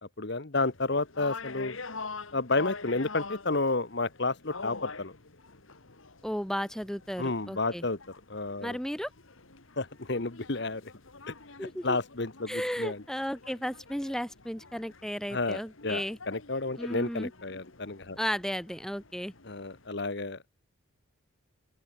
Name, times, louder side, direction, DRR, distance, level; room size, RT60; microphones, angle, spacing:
voice 1, 0.2-1.8 2.3-5.1 7.2-8.0 8.3-8.8 9.8-10.9 11.3-11.4 11.8-13.0 15.3-18.2 19.4-20.4, left 3 dB, 55° left, 1.2 m, -31 dB
sound 1, 0.5-19.9, left 4 dB, 75° left, 2.2 m, -46 dB
voice 2, 6.2-7.9 8.6-9.1 11.6-12.0 12.5-16.2 16.8-17.3 18.2-19.3, equal, ahead, 1.3 m, -34 dB
open air
head